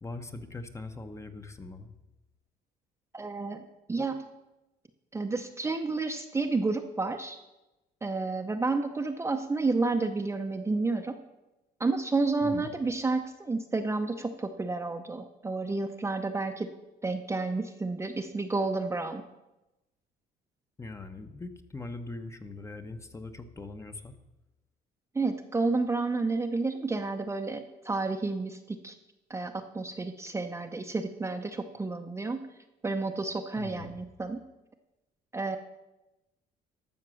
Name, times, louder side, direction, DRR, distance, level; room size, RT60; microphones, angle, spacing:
voice 1, 0.0-1.9 12.4-12.7 20.8-24.1 33.6-34.0, left 3 dB, 15° left, 8 dB, 0.8 m, -41 dB
voice 2, 3.1-4.2 5.1-7.4 8.0-11.2 11.8-16.7 17.0-19.2 25.1-28.9 29.3-32.5 32.8-34.4 35.3-35.6, right 3 dB, 15° right, 6 dB, 0.6 m, -30 dB
12.5 x 6.6 x 6.3 m, 1.0 s
cardioid pair, 110°, 17 cm